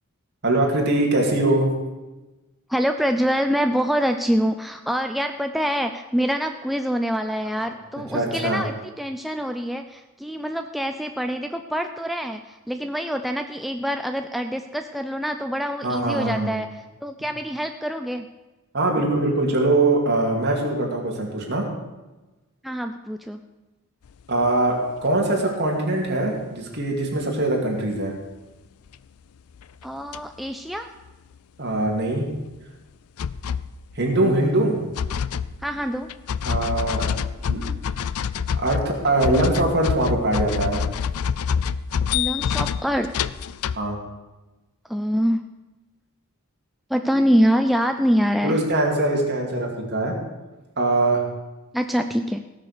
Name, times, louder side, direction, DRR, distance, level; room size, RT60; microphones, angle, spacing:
voice 1, 0.4-1.7 7.6-7.7 8.1-8.6 15.8-16.5 18.7-21.6 24.3-24.8 25.0-28.1 31.6-32.3 34.0-34.8 36.5-37.1 37.5-37.6 38.6-40.8 43.7-44.0 48.4-50.1 50.8-51.2, right 2 dB, 50° right, 0 dB, 2.7 m, -22 dB
voice 2, 2.7-16.7 17.0-18.3 22.6-23.4 29.8-30.9 34.2-34.6 35.6-36.1 42.1-43.3 44.9-45.4 46.9-48.6 51.7-52.4, equal, ahead, 5 dB, 0.4 m, -25 dB
sound 1, 24.5-24.6 28.9-29.0 29.6-29.8 30.1-30.2 30.5-30.6 30.8-30.9 31.1-31.2 31.4-31.5 31.9-32.0 32.5-32.6 33.2-33.9 34.9-43.8, left 7 dB, 85° left, 0.4 m, -26 dB
17.5 x 6.5 x 6.7 m, 1.1 s
head